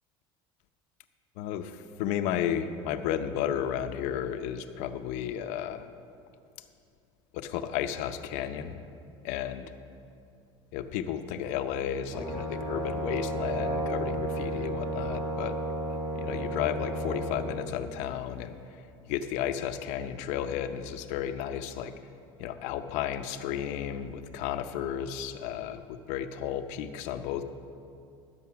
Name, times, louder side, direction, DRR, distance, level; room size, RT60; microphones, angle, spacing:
voice 1, 1.4-5.9 7.3-8.8 9.2-9.7 10.7-15.6 15.9-21.9 22.4-27.4, left 9 dB, 70° left, 9 dB, 0.7 m, -33 dB
Brass instrument, 12.1-17.6, right 1 dB, 30° right, 2.7 m, -32 dB
11.0 x 7.9 x 5.8 m, 2.5 s
supercardioid pair, 100°, 13 cm